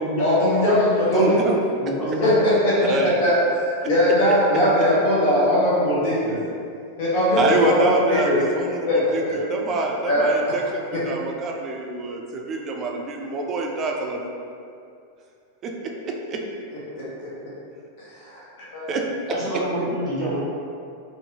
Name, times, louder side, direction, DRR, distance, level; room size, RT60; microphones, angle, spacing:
voice 1, 0.2-1.4 2.2-2.8 3.0-3.4 3.6-6.4 7.0-7.8 8.1-8.3 8.9-9.0 9.3-9.4 10.1-10.6 10.9-11.0 16.9-17.5 18.0-18.4 18.7-18.8, left 1 dB, 50° left, -7 dB, 0.7 m, -20 dB
voice 2, 1.1-1.6 2.8-3.1 7.3-14.2 15.6-16.4 18.9-19.6, right 2 dB, 30° right, 1 dB, 0.3 m, -26 dB
voice 3, 1.8-2.4 19.3-20.4, equal, 15° left, -15 dB, 0.9 m, -27 dB
2.7 x 2.4 x 2.8 m, 2.5 s
figure-of-eight pair, 90°, 0 cm